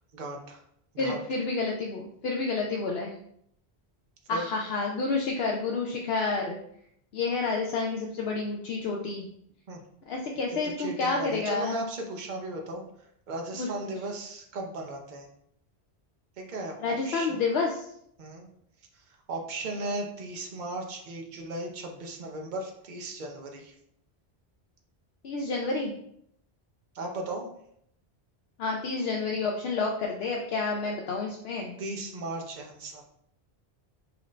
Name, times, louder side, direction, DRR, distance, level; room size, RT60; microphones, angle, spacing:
voice 1, 0.1-0.6 0.9-1.2 4.3-4.5 9.7-9.8 10.5-12.8 13.3-15.3 16.4-17.4 18.2-18.5 18.9-23.7 26.9-27.5 31.8-33.0, right 2 dB, 50° right, 2 dB, 0.8 m, -36 dB
voice 2, 1.0-3.1 4.3-6.6 7.1-9.3 10.1-11.8 13.5-13.7 16.8-17.9 19.8-19.9 25.2-25.9 28.6-31.8, left 3 dB, 75° left, 0 dB, 0.8 m, -29 dB
5.8 x 2.6 x 3.2 m, 0.72 s
omnidirectional pair, 1.1 m